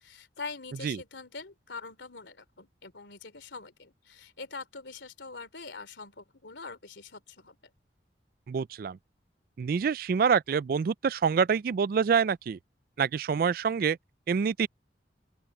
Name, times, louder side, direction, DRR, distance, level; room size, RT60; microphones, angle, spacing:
voice 1, 0.0-7.6, left 4 dB, 85° left, 3.0 m, -44 dB
voice 2, 8.5-9.0 9.6-12.6 13.0-14.0 14.3-14.7, right 6 dB, 50° right, 0.3 m, -26 dB
open air
head